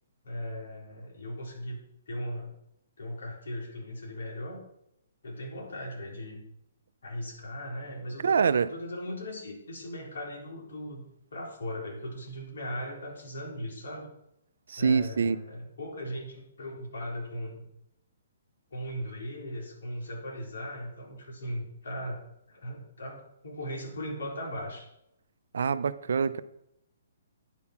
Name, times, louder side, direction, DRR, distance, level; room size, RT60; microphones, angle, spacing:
voice 1, 0.2-1.8 2.1-2.5 3.0-4.6 5.2-6.4 7.0-11.0 11.3-14.1 14.8-17.7 18.7-22.2 22.5-24.9, equal, 80° left, 3.7 m, -38 dB
voice 2, 8.2-8.7 14.7-15.4 25.5-26.4, right 6 dB, 75° right, 0.5 m, -25 dB
9.8 x 5.6 x 5.9 m
hypercardioid pair, 150°, 0 cm